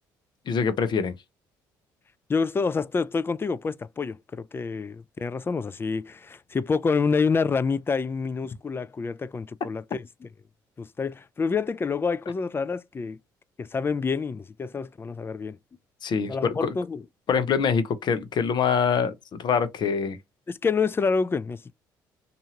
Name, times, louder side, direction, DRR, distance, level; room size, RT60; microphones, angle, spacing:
voice 1, 0.5-1.1 16.0-16.7 17.3-20.2, left 6 dB, 55° left, 0.8 m, -24 dB
voice 2, 2.3-10.3 10.8-13.2 13.6-15.6 16.3-17.0 20.5-21.7, left 5 dB, 25° left, 0.3 m, -27 dB
2.7 x 2.6 x 2.8 m
supercardioid pair, 60°, 9 cm